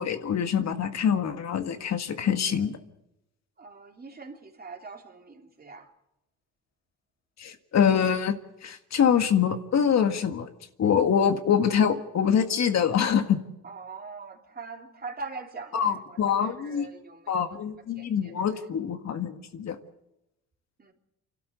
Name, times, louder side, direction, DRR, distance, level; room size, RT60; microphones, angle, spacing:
voice 1, 0.0-2.8 7.4-10.5 10.8-13.4 15.7-16.9 17.3-19.8, left 8 dB, 60° left, 1.8 m, -25 dB
voice 2, 3.6-5.9 13.6-18.7 20.8-20.9, right 4 dB, 30° right, 3.5 m, -43 dB
27.5 x 12.5 x 8.1 m
cardioid pair, 90°, 30 cm